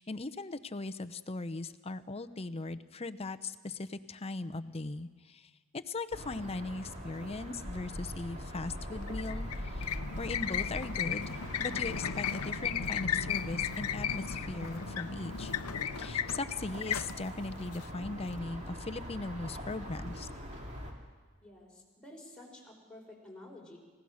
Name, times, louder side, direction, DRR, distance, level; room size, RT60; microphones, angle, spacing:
voice 1, 0.0-15.5 16.0-20.3, left 3 dB, 25° left, 10 dB, 0.7 m, -39 dB
sound 1, 6.1-20.9, equal, 30° right, 3.2 m, -42 dB
sound 2, 9.0-18.4, left 8 dB, 85° left, 0.7 m, -36 dB
voice 2, 21.4-23.8, left 1 dB, 5° left, -2 dB, 4.6 m, -51 dB
29.5 x 16.5 x 6.5 m, 1.4 s
head